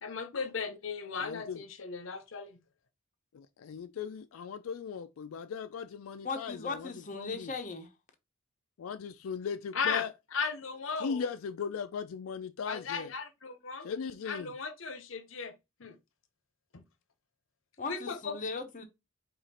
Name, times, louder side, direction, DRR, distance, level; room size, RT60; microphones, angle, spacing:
voice 1, 0.0-2.6 9.7-10.0 10.3-11.2 12.6-13.9 14.3-15.5 15.8-16.0 16.7-16.8 17.8-18.4, left 5 dB, 70° left, 0.8 m, -36 dB
voice 2, 1.2-1.6 3.3-7.5 8.8-10.1 11.0-13.1 13.8-14.5, left 6 dB, 90° left, 0.4 m, -38 dB
voice 3, 6.2-7.9 17.8-18.8, left 4 dB, 40° left, 0.8 m, -38 dB
4.9 x 2.5 x 4.2 m
head